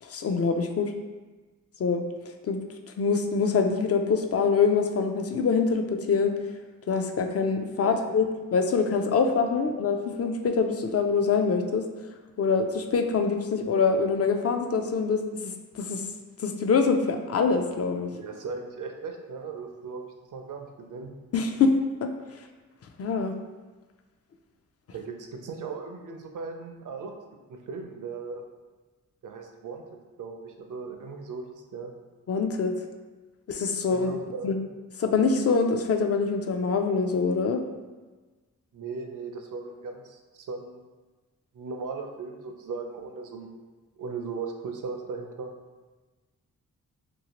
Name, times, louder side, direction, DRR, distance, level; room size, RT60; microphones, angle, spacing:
voice 1, 0.0-0.9 1.8-2.0 2.5-2.6 3.0-6.3 6.9-11.8 12.4-16.0 16.4-18.1 21.3-22.1 23.0-23.3 32.3-32.7 33.5-34.1 34.4-34.6 35.0-37.6, left 5 dB, 45° left, 5 dB, 0.4 m, -25 dB
voice 2, 18.1-21.1 24.9-27.2 27.5-28.4 29.2-29.8 30.2-31.5 31.7-31.9 33.9-34.5 38.7-40.8 41.5-43.6 44.0-45.5, right 4 dB, 60° right, 4 dB, 0.5 m, -37 dB
2.8 x 2.7 x 2.9 m, 1.3 s
cardioid pair, 55°, 35 cm